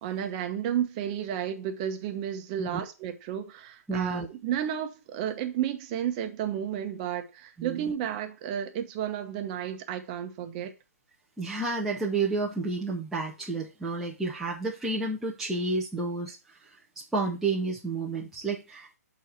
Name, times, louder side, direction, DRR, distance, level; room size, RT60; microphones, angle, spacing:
voice 1, 0.0-10.7, right 10 dB, 25° right, 1.0 m, -32 dB
voice 2, 3.9-4.3 7.6-7.8 11.4-16.6 17.0-18.9, right 3 dB, 5° right, 0.6 m, -30 dB
6.4 x 4.2 x 5.8 m
hypercardioid pair, 155°, 9 cm